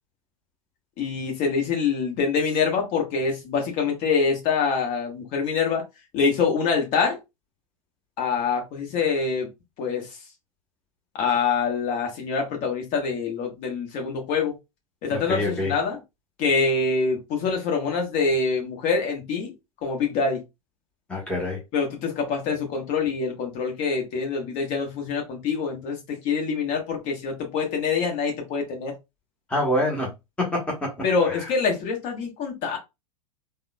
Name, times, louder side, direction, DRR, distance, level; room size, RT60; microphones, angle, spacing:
voice 1, 1.0-5.8 6.1-7.2 8.2-9.5 9.8-10.1 11.1-14.5 15.0-16.0 16.4-19.5 19.8-20.4 21.7-28.9 31.0-32.8, left 5 dB, 40° left, 1.2 m, -25 dB
voice 2, 15.1-15.7 21.1-21.6 29.5-30.1 30.4-30.9 31.3-31.5, left 1 dB, 5° left, 0.9 m, -26 dB
3.5 x 2.1 x 2.2 m
figure-of-eight pair, 90°, 18 cm